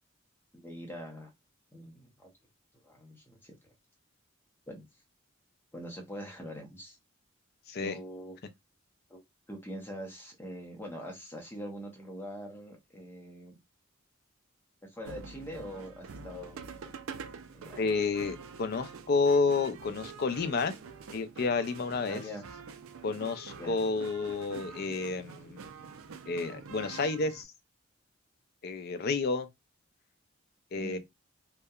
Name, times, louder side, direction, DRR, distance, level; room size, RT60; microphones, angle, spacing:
voice 1, 0.5-1.3 1.7-2.3 2.8-3.6 4.7-4.9 5.7-7.0 7.8-8.4 9.1-9.2 9.5-13.6 14.8-16.9 17.5-17.9 22.1-22.4 23.6-23.8 30.7-31.0, equal, 10° left, 0.6 m, -43 dB
sound 1, 15.0-27.4, right 5 dB, 85° right, 0.4 m, -46 dB
voice 2, 17.8-20.7 21.1-22.2 23.0-25.6 26.3-27.5 28.6-29.5 30.7-31.0, left 4 dB, 50° left, 0.4 m, -30 dB
2.7 x 2.2 x 2.3 m
head